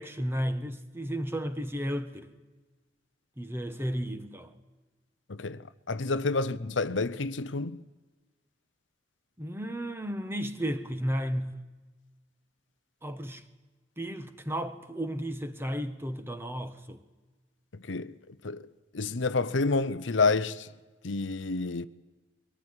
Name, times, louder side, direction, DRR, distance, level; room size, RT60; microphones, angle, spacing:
voice 1, 0.0-2.3 3.4-4.5 9.4-11.6 13.0-13.4 14.0-17.0, equal, 15° right, 1.4 m, -33 dB
voice 2, 5.3-7.8 17.7-20.7 21.0-21.9, left 3 dB, 85° left, 0.8 m, -29 dB
23.0 x 18.5 x 9.8 m
head